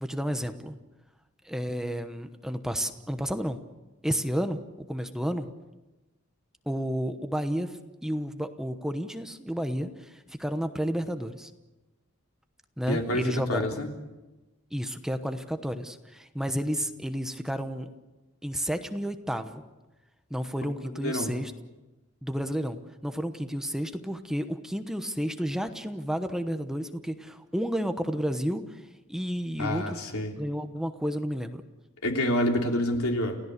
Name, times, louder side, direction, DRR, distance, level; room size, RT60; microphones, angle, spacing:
voice 1, 0.0-0.8 1.4-3.6 4.0-5.5 6.7-11.5 12.8-13.7 14.7-17.9 18.4-19.6 20.3-21.5 22.2-28.8 29.1-30.0 30.4-31.6, equal, ahead, 8 dB, 1.0 m, -31 dB
voice 2, 12.9-13.9 20.9-21.4 29.6-30.3 32.0-33.4, left 1 dB, 85° left, 2 dB, 3.3 m, -28 dB
29.5 x 16.5 x 6.7 m, 1.1 s
head